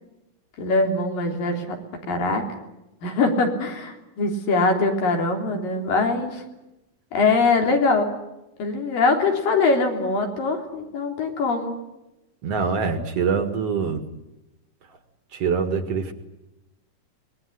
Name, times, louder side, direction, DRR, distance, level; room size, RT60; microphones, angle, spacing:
voice 1, 0.6-1.8 2.1-2.5 3.0-6.4 7.1-8.1 8.6-11.8, left 3 dB, 85° left, 3 dB, 5.1 m, -22 dB
voice 2, 12.4-14.0 15.3-16.1, right 5 dB, 50° right, 8 dB, 2.7 m, -24 dB
24.5 x 21.0 x 10.0 m, 0.95 s
omnidirectional pair, 3.9 m